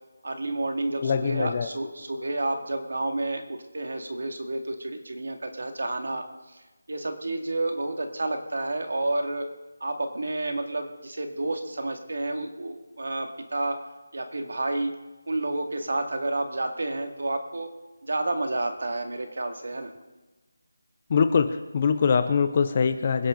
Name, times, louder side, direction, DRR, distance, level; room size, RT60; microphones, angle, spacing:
voice 1, 0.2-6.6 6.9-9.5 9.8-13.8 14.1-15.0 15.3-17.7 18.1-19.9, right 2 dB, 55° right, 5 dB, 2.1 m, -30 dB
voice 2, 1.0-1.7 21.1-23.3, left 6 dB, 20° left, 10 dB, 0.5 m, -23 dB
26.0 x 10.5 x 3.9 m, 1.2 s
figure-of-eight pair, 180°, 0 cm